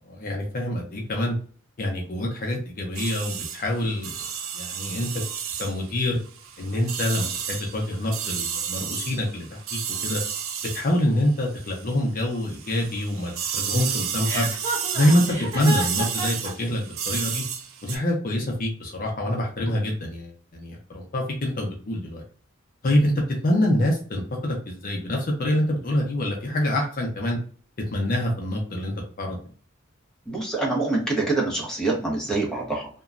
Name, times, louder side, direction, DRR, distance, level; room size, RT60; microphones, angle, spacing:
voice 1, 0.1-1.3 1.8-4.3 4.5-5.2 5.6-6.2 6.6-10.2 10.7-14.5 14.9-17.4 17.8-22.2 22.8-27.4 27.9-29.4, left 1 dB, 45° left, 0 dB, 0.6 m, -26 dB
sound 1, 2.9-12.0 12.3-18.0, right 8 dB, 75° right, 0.4 m, -32 dB
Chuckle chortle, 14.2-16.5, right 1 dB, 20° right, 1.3 m, -30 dB
voice 2, 30.3-32.9, right 3 dB, 5° left, -3 dB, 0.8 m, -25 dB
2.9 x 2.2 x 2.4 m, 0.43 s
head